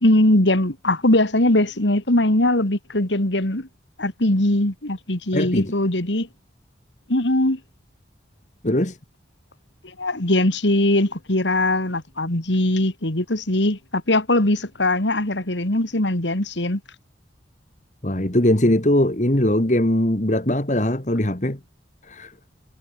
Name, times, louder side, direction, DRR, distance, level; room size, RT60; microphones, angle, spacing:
voice 1, 0.0-3.7 4.0-6.3 7.1-7.6 9.8-16.8, left 1 dB, 85° left, 3.1 m, -21 dB
voice 2, 5.3-5.7 8.6-9.0 18.0-21.6 22.1-22.3, left 1 dB, 40° left, 2.2 m, -20 dB
head